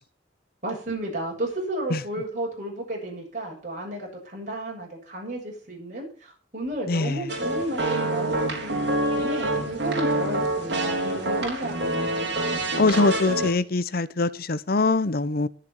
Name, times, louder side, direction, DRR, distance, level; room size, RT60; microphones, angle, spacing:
voice 1, 0.6-8.8 9.2-12.1, right 1 dB, 40° right, 7.2 m, -33 dB
voice 2, 6.9-7.3 12.8-15.5, left 3 dB, 55° left, 0.8 m, -23 dB
sound 1, 7.3-13.5, right 1 dB, 65° right, 4.2 m, -26 dB
20.5 x 7.0 x 4.7 m
head